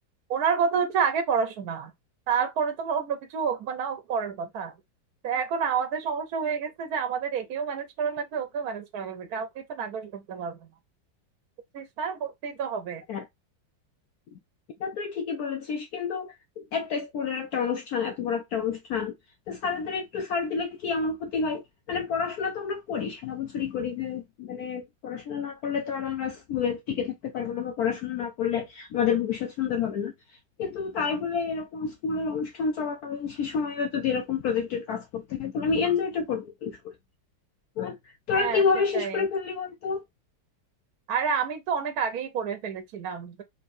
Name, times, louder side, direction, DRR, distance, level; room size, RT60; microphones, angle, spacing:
voice 1, 0.3-1.9 2.3-4.7 5.2-10.7 11.7-13.0 38.3-38.6 38.9-39.3 41.1-43.4, right 6 dB, 60° right, 1.1 m, -29 dB
voice 2, 14.8-19.1 19.5-30.1 30.6-36.9 37.8-40.0, left 6 dB, 65° left, 1.0 m, -29 dB
4.4 x 3.0 x 2.5 m
omnidirectional pair, 2.0 m